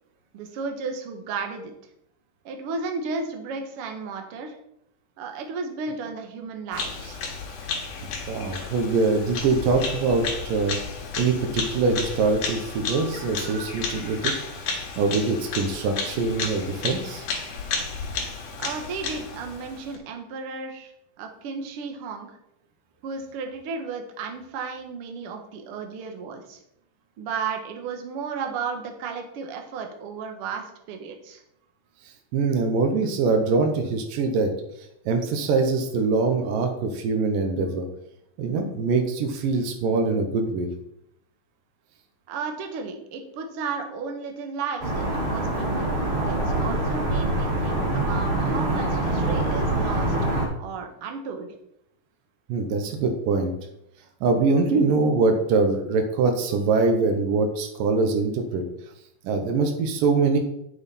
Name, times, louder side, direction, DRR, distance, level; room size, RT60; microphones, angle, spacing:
voice 1, 0.3-1.7 2.4-4.6 5.2-7.2 18.6-20.9 21.2-22.3 23.0-26.6 27.2-31.4 42.3-45.9 46.3-50.2 50.6-51.5, right 5 dB, 60° right, 4 dB, 1.6 m, -34 dB
Bird vocalization bird call bird song, 6.7-20.0, left 4 dB, 70° left, 3.0 m, -32 dB
voice 2, 8.3-10.8 11.2-14.3 15.0-17.3 32.3-34.5 35.1-37.9 38.4-40.7 52.5-53.5 54.2-58.6 59.2-60.4, right 4 dB, 80° right, 4 dB, 2.6 m, -23 dB
sound 1, 44.8-50.5, right 2 dB, 30° right, 1.2 m, -25 dB
8.6 x 7.1 x 4.2 m, 0.78 s
omnidirectional pair, 3.9 m